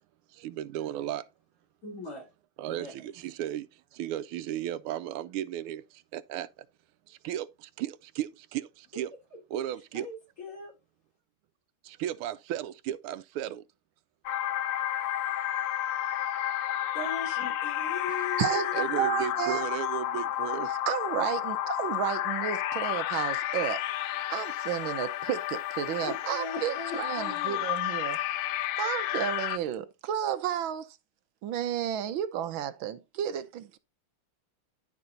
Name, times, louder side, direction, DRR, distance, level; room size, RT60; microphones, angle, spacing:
voice 1, 0.3-1.3 2.6-6.7 7.1-9.1 9.5-10.1 11.8-13.6 18.7-20.7, right 11 dB, 90° right, 1.5 m, -35 dB
voice 2, 1.8-2.3 2.7-2.9 9.3-9.4 9.9-10.7 16.9-19.2 26.0-27.6, left 4 dB, 40° left, 4.1 m, -39 dB
sound 1, 14.3-29.6, left 12 dB, 75° left, 1.3 m, -31 dB
voice 3, 18.4-19.6 20.9-23.8 24.3-28.2 28.8-31.0 31.4-33.8, right 10 dB, 75° right, 1.5 m, -32 dB
10.5 x 4.9 x 3.9 m
omnidirectional pair, 2.3 m